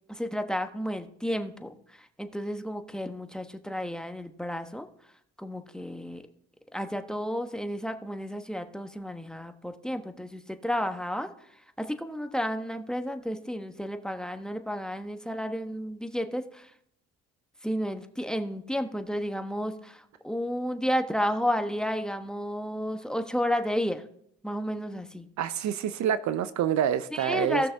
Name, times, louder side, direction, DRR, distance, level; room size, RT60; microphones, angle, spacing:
voice 1, 0.1-4.9 5.4-6.2 6.7-11.3 11.8-16.7 17.6-24.0 24.4-25.3 27.1-27.7, equal, ahead, 6 dB, 1.2 m, -32 dB
voice 2, 25.4-27.6, right 9 dB, 60° right, 14 dB, 0.7 m, -27 dB
17.0 x 6.2 x 3.5 m, 0.72 s
supercardioid pair, 60°, 32 cm